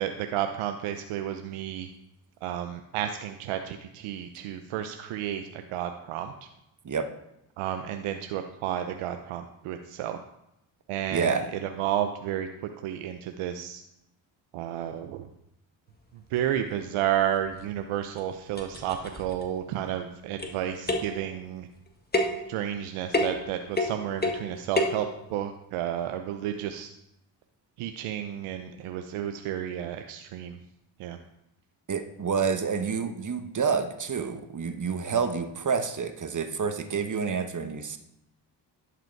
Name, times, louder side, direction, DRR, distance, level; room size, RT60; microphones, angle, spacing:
voice 1, 0.0-1.9 2.4-6.5 7.6-10.2 10.9-12.5 12.8-13.8 14.5-15.3 16.1-21.7 22.5-26.9 27.8-30.6 31.0-31.2, right 10 dB, 80° right, 7 dB, 0.7 m, -32 dB
voice 2, 11.1-11.5 31.9-38.0, right 6 dB, 35° right, 9 dB, 1.1 m, -28 dB
sound 1, 17.5-17.6 18.2-18.3 18.5-19.4 20.4-20.6 20.9-21.2 22.1-22.5 23.1-23.5 23.8-24.5 24.8-25.0, left 1 dB, 20° left, 1.6 m, -28 dB
11.0 x 5.1 x 4.6 m, 0.85 s
supercardioid pair, 50°, 50 cm